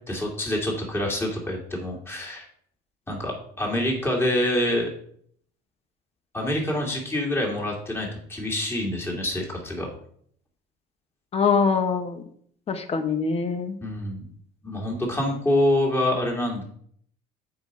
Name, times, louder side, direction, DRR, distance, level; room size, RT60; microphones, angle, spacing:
voice 1, 0.1-2.5 3.1-4.9 6.3-9.9 13.8-14.2 14.6-16.6, left 1 dB, 10° left, -2 dB, 2.2 m, -26 dB
voice 2, 11.3-12.2 12.7-13.8, left 5 dB, 30° left, 8 dB, 1.0 m, -23 dB
7.9 x 4.8 x 5.3 m, 0.63 s
cardioid pair, 125°, 19 cm